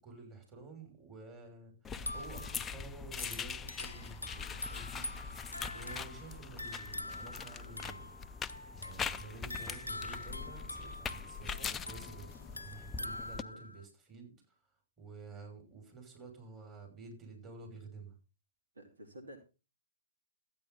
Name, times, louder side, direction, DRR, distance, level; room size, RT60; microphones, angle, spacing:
voice 1, 0.0-5.1 5.7-8.1 8.8-12.3 12.6-14.5 15.0-18.1, right 3 dB, 20° right, 2 dB, 5.9 m, -50 dB
sound 1, 1.8-13.4, left 6 dB, 15° left, 0.5 m, -42 dB
sound 2, 1.9-13.8, left 2 dB, 85° left, 0.6 m, -45 dB
voice 2, 18.7-19.4, equal, 75° right, 5 dB, 2.4 m, -51 dB
14.0 x 9.2 x 3.9 m, 0.31 s
figure-of-eight pair, 120°, 0 cm